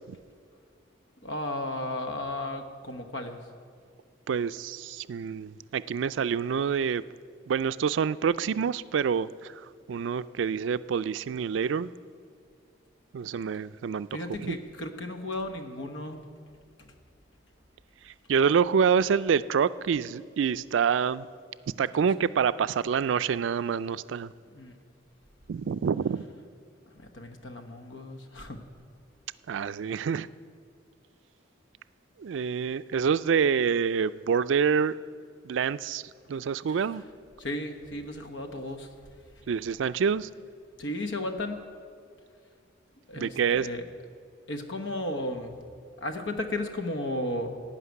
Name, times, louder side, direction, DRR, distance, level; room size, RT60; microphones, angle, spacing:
voice 1, 1.2-3.5 14.1-16.2 16.8-16.9 21.8-21.9 22.2-22.4 24.5-24.7 26.9-28.6 36.7-36.8 37.4-38.9 40.8-41.7 43.1-43.8 44.5-45.6 46.0-47.6, left 1 dB, 85° left, 6 dB, 1.2 m, -34 dB
voice 2, 4.3-7.0 7.5-11.9 13.1-14.1 14.4-14.6 18.0-21.3 21.8-24.3 25.5-26.2 29.5-30.3 32.2-34.9 35.4-37.0 39.5-40.3 43.2-43.7, right 6 dB, 85° right, 15 dB, 0.4 m, -27 dB
15.5 x 5.9 x 9.4 m, 2.3 s
head